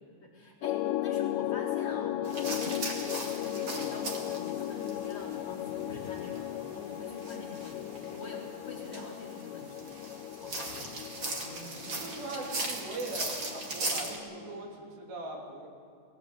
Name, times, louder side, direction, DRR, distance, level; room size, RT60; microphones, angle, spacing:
voice 1, 0.2-9.9 10.4-10.9, left 2 dB, 30° left, -3 dB, 4.1 m, -46 dB
sound 1, 0.6-14.6, left 13 dB, 80° left, 3.0 m, -36 dB
sound 2, 2.2-14.2, right 2 dB, 35° right, 2.3 m, -39 dB
voice 2, 11.4-15.7, right 2 dB, 75° right, -1 dB, 5.3 m, -41 dB
21.0 x 18.0 x 8.2 m, 2.3 s
omnidirectional pair, 5.0 m